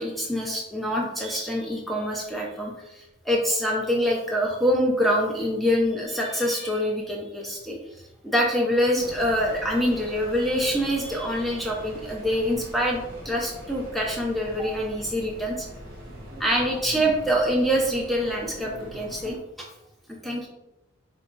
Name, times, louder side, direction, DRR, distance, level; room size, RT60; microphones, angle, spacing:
voice 1, 0.0-7.8 8.2-15.7 16.4-19.7 20.2-20.5, equal, ahead, -2 dB, 0.8 m, -25 dB
sound 1, 8.9-19.4, equal, 45° right, 1.2 m, -41 dB
4.6 x 3.4 x 2.6 m, 0.90 s
head